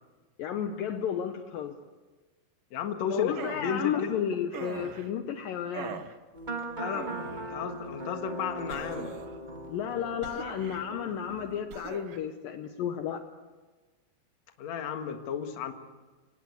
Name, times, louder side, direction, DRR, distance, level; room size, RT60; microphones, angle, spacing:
voice 1, 0.4-1.8 3.1-6.0 9.7-13.2, left 8 dB, 70° left, 7 dB, 2.5 m, -32 dB
voice 2, 2.7-4.1 6.8-9.1 14.6-15.7, left 7 dB, 55° left, 6 dB, 2.5 m, -34 dB
sound 1, 3.3-3.7 4.5-5.1 5.7-6.1 6.9-7.5 8.7-9.4 10.2-10.9 11.7-12.2, right 6 dB, 70° right, 1.3 m, -41 dB
sound 2, 6.3-11.6, right 1 dB, 15° right, 1.6 m, -39 dB
27.0 x 17.5 x 8.3 m, 1.3 s
omnidirectional pair, 4.5 m